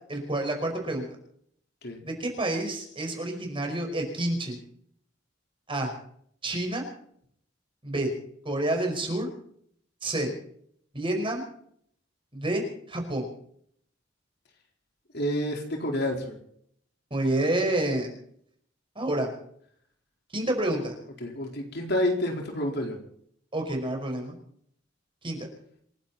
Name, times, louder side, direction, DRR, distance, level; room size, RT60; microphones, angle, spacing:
voice 1, 0.1-1.1 2.0-4.6 5.7-5.9 6.4-6.8 7.8-8.1 8.5-9.3 10.0-10.3 10.9-11.4 12.3-13.3 17.1-18.2 19.0-19.3 20.3-21.0 23.5-24.3 25.2-25.4, right 1 dB, 30° right, 3 dB, 5.3 m, -28 dB
voice 2, 15.1-16.3 21.2-23.0, left 1 dB, 60° left, 2 dB, 4.1 m, -29 dB
27.5 x 11.5 x 4.2 m, 0.65 s
head